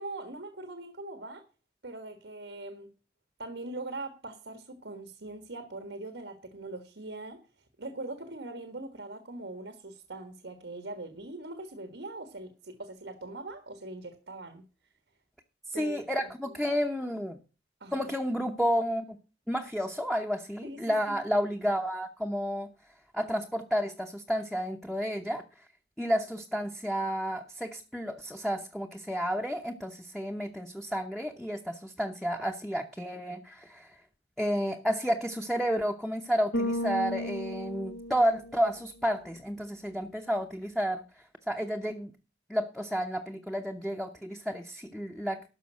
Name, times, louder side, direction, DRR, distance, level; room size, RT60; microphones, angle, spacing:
voice 1, 0.0-1.4 1.8-2.9 3.4-7.4 7.8-14.6 15.7-16.0 16.2-16.5 17.8-18.1 20.6-21.1, right 2 dB, 90° right, 8 dB, 1.5 m, -41 dB
voice 2, 15.7-17.4 17.9-19.2 19.5-22.7 23.1-25.4 26.0-34.0 34.4-42.1 42.5-45.4, equal, ahead, 3 dB, 0.8 m, -31 dB
Bass guitar, 36.5-38.9, left 1 dB, 75° left, 1.6 m, -34 dB
12.5 x 5.3 x 7.6 m, 0.33 s
head